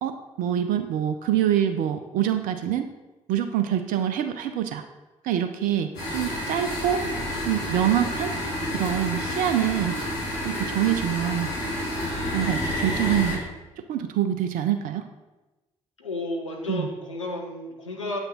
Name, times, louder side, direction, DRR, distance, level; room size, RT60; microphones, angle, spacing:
voice 1, 0.0-2.9 3.3-4.9 5.2-7.1 7.4-8.4 8.7-10.0 10.4-11.5 12.1-13.5 13.8-15.0 16.7-16.9, right 10 dB, 60° right, 9 dB, 0.6 m, -25 dB
sound 1, 5.9-13.3, left 1 dB, 70° left, 3.0 m, -29 dB
voice 2, 16.0-18.2, left 2 dB, 85° left, 0 dB, 0.9 m, -32 dB
9.0 x 8.0 x 3.8 m, 1.1 s
figure-of-eight pair, 40°, 16 cm